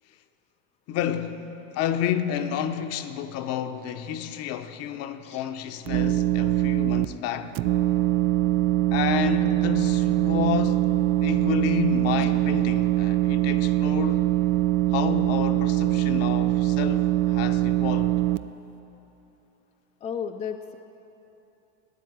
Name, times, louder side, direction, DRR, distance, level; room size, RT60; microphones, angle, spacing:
voice 1, 0.9-1.4 1.7-7.6 8.9-10.9 11.2-14.3 14.9-18.1, left 9 dB, 45° left, 0.8 m, -30 dB
sound 1, 5.9-7.1 7.6-18.4, right 17 dB, 65° right, 0.4 m, -23 dB
voice 2, 20.0-20.8, left 7 dB, 20° left, 0.5 m, -34 dB
12.5 x 9.4 x 9.3 m
supercardioid pair, 135°, 34 cm